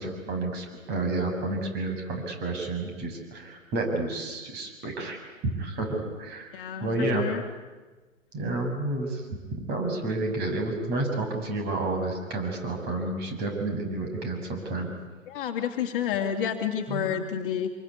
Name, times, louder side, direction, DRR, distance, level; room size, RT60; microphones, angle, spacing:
voice 1, 0.0-5.2 5.4-6.5 6.8-7.2 8.3-9.2 9.6-14.9 16.9-17.1, right 2 dB, 25° right, 4 dB, 6.7 m, -30 dB
voice 2, 6.5-7.4 15.3-17.7, left 8 dB, 40° left, 4 dB, 2.4 m, -29 dB
26.5 x 23.0 x 9.7 m, 1.3 s
figure-of-eight pair, 120°, 40 cm